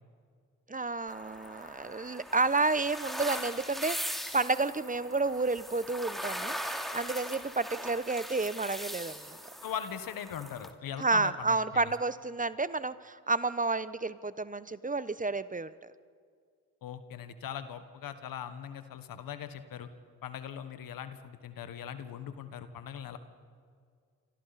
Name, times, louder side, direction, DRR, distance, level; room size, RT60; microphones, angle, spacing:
voice 1, 0.7-9.4 11.0-15.9, right 3 dB, 25° right, 15 dB, 0.9 m, -31 dB
sound 1, 1.1-10.7, equal, ahead, 2.6 m, -40 dB
voice 2, 9.6-11.9 16.8-19.9 20.2-23.2, left 9 dB, 75° left, 11 dB, 1.4 m, -40 dB
28.0 x 25.0 x 4.2 m, 2.1 s
supercardioid pair, 45°, 34 cm